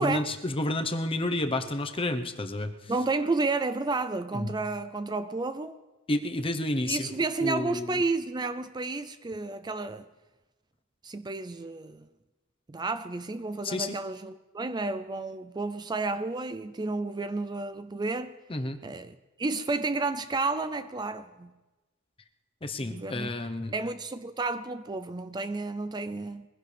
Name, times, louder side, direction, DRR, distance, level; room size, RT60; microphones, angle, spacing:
voice 1, 0.0-2.9 4.3-4.6 6.1-8.0 13.6-13.9 18.5-18.8 22.6-23.7, left 1 dB, 25° left, 7 dB, 1.0 m, -30 dB
voice 2, 2.9-5.8 6.9-10.0 11.0-12.1 12.7-18.4 18.8-21.5 22.8-23.3 23.7-26.5, right 3 dB, 20° right, 12 dB, 0.4 m, -31 dB
22.5 x 16.0 x 3.4 m, 1.1 s
head